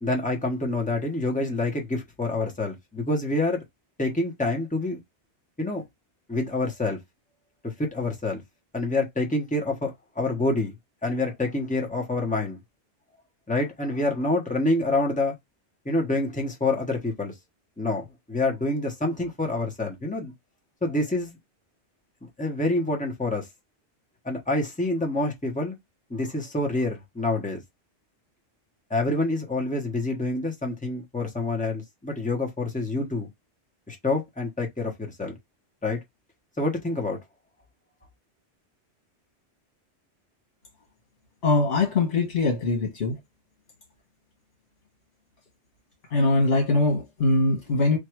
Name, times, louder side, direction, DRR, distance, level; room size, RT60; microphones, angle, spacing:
voice 1, 0.0-3.6 4.0-5.0 5.6-5.8 6.3-7.0 7.6-8.4 8.7-10.7 11.0-12.6 13.5-15.3 15.8-17.3 17.8-20.3 20.8-21.3 22.2-23.5 24.2-25.8 26.1-27.6 28.9-33.3 33.9-35.3 35.8-36.0 36.6-37.2, left 2 dB, 5° left, 1.0 m, -27 dB
voice 2, 41.4-43.2 46.1-48.0, left 3 dB, 65° left, 1.7 m, -22 dB
3.3 x 2.5 x 4.5 m
omnidirectional pair, 1.2 m